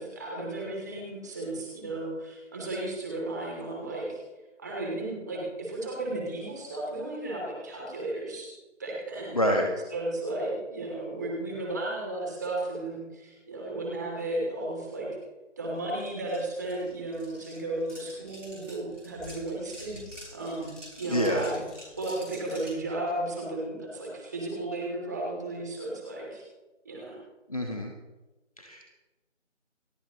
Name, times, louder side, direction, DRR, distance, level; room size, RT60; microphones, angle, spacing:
voice 1, 0.0-4.2 4.6-8.5 8.8-9.4 9.9-15.1 15.6-20.0 20.3-21.6 22.0-26.4 26.8-27.2, right 2 dB, 15° right, -3 dB, 2.8 m, -34 dB
voice 2, 9.3-9.7 21.1-21.4 27.5-27.9 28.6-28.9, equal, 30° left, 1 dB, 1.2 m, -27 dB
sound 1, 16.0-16.1 16.3-22.8, equal, ahead, 2.3 m, -48 dB
28.0 x 9.8 x 3.1 m, 1.1 s
figure-of-eight pair, 170°, 37 cm